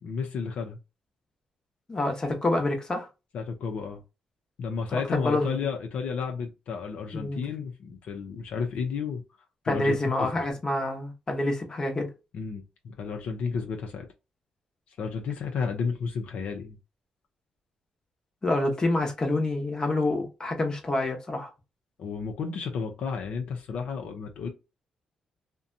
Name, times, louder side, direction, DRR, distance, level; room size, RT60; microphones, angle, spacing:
voice 1, 0.0-0.8 3.3-4.0 4.6-9.2 9.7-10.4 12.3-14.1 15.0-16.8 22.0-24.5, left 5 dB, 75° left, 0.6 m, -32 dB
voice 2, 1.9-3.1 5.1-5.7 7.1-7.4 9.6-12.1 18.4-21.5, left 2 dB, 30° left, 0.8 m, -27 dB
2.6 x 2.2 x 2.5 m
cardioid pair, 85°, 2 cm